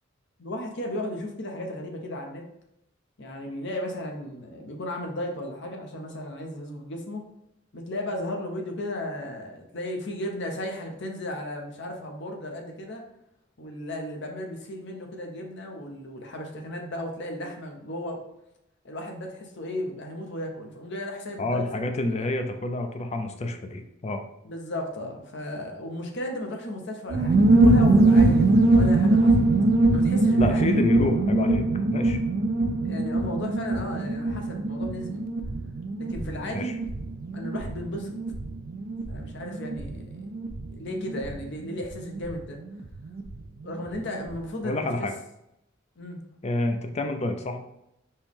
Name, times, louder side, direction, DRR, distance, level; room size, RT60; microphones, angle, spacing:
voice 1, 0.4-2.4 3.2-7.2 7.7-13.0 13.6-18.2 18.8-22.3 24.4-29.4 29.9-30.6 32.5-35.2 36.0-36.8 37.3-38.1 39.1-40.3 40.7-42.6 43.6-45.1 46.0-46.2, left 1 dB, 60° left, 2 dB, 0.8 m, -35 dB
voice 2, 21.4-24.2 30.4-31.6 31.9-32.2 36.5-36.7 44.6-45.1 46.4-47.6, left 2 dB, 35° left, 6 dB, 0.5 m, -28 dB
sound 1, 27.1-43.4 43.6-43.7 44.0-44.4, right 2 dB, 50° right, 0.4 m, -23 dB
4.4 x 3.1 x 3.6 m, 0.82 s
head